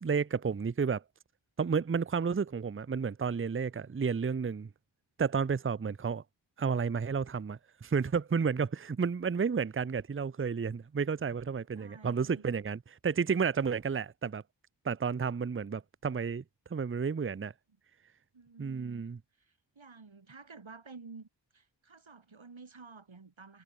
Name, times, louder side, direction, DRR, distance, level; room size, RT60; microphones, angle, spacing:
voice 1, 0.0-1.0 1.6-4.7 5.2-6.2 6.6-14.4 14.8-16.4 16.7-17.5 18.6-19.2, right 6 dB, 30° right, 0.6 m, -31 dB
voice 2, 11.7-12.5 18.3-19.0 19.3-23.6, right 4 dB, 80° right, 5.5 m, -52 dB
wide cardioid pair, 60°, 46 cm